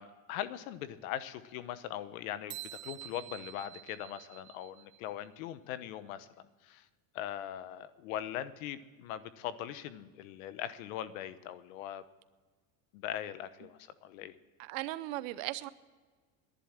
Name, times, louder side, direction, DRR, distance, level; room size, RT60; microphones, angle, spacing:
voice 1, 0.0-6.3 6.6-6.8 7.1-12.0 12.9-14.3, left 11 dB, 85° left, 14 dB, 1.0 m, -41 dB
sound 1, 2.5-5.1, right 17 dB, 30° right, 0.5 m, -47 dB
voice 2, 14.6-15.7, right 17 dB, 75° right, 16 dB, 0.8 m, -37 dB
11.0 x 11.0 x 7.5 m, 1.4 s
cardioid pair, 160°, 40 cm